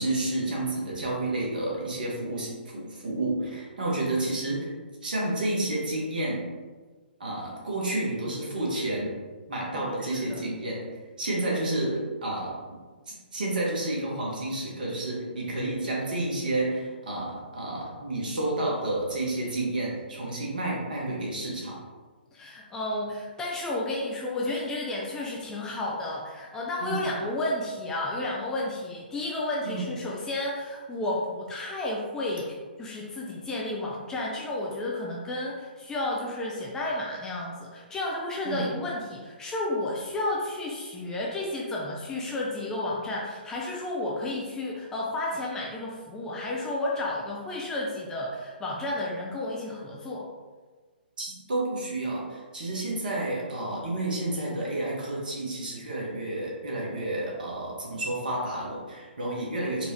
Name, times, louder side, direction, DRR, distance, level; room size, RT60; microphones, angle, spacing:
voice 1, 0.0-4.7 5.0-6.5 7.2-9.1 9.5-10.9 11.2-12.6 13.1-21.8 26.8-27.0 29.6-29.9 38.4-38.7 51.2-59.9, right 2 dB, 55° right, -3 dB, 1.3 m, -30 dB
voice 2, 9.7-10.4 22.3-50.3, left 2 dB, 10° left, -4 dB, 0.4 m, -32 dB
4.5 x 2.5 x 3.3 m, 1.4 s
figure-of-eight pair, 125°, 6 cm